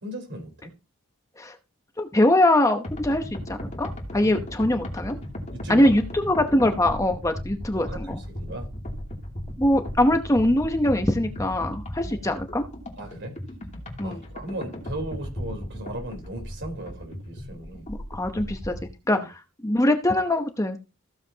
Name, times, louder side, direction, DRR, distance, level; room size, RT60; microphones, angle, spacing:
voice 1, 0.0-0.7 5.5-5.9 6.6-6.7 7.9-8.0 8.3-8.7 12.0-12.1 13.0-13.3 14.0-17.9 19.1-19.3, right 1 dB, 50° right, 3.8 m, -36 dB
voice 2, 2.0-5.2 5.7-8.2 9.6-12.6 14.0-14.2 17.9-18.7 19.1-20.8, left 1 dB, 15° left, 0.8 m, -23 dB
sound 1, 2.8-18.9, equal, 30° left, 2.8 m, -36 dB
15.5 x 7.5 x 2.9 m
head